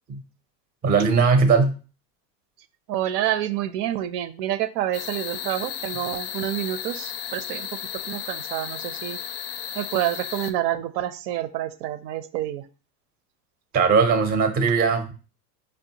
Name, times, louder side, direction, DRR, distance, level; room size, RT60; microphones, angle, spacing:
voice 1, 0.8-1.8 13.7-15.1, right 5 dB, 20° right, 7 dB, 0.5 m, -19 dB
voice 2, 2.9-7.7 8.1-9.2 9.8-12.6, right 12 dB, 75° right, 12 dB, 0.6 m, -28 dB
sound 1, 4.9-10.5, left 9 dB, 40° left, 0.4 m, -34 dB
5.2 x 2.2 x 2.7 m, 0.35 s
supercardioid pair, 105°, 49 cm